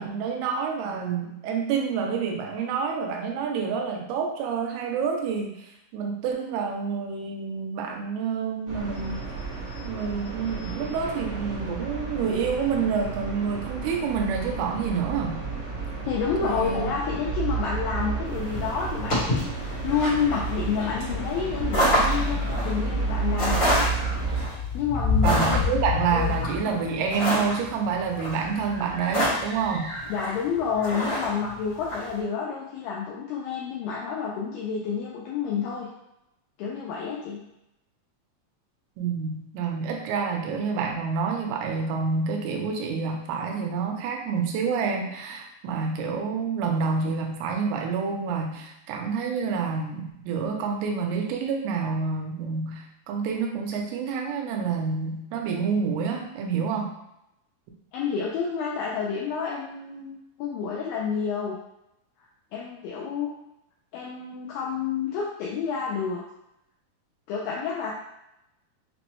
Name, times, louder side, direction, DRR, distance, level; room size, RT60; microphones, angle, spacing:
voice 1, 0.0-5.7 5.9-9.2 9.8-15.4 16.4-17.1 25.2-29.9 39.0-56.9, right 5 dB, 85° right, 2 dB, 2.6 m, -28 dB
sound 1, 8.7-24.4, right 4 dB, 65° right, 1.2 m, -31 dB
voice 2, 16.1-23.6 24.7-25.7 26.1-26.8 30.1-35.9 36.6-37.4 57.9-61.6 62.5-63.3 63.9-66.2 67.3-67.9, left 6 dB, 85° left, -4 dB, 2.0 m, -29 dB
sound 2, 18.3-32.1, left 2 dB, 65° left, 1.1 m, -27 dB
5.9 x 2.0 x 3.0 m, 0.84 s
omnidirectional pair, 4.5 m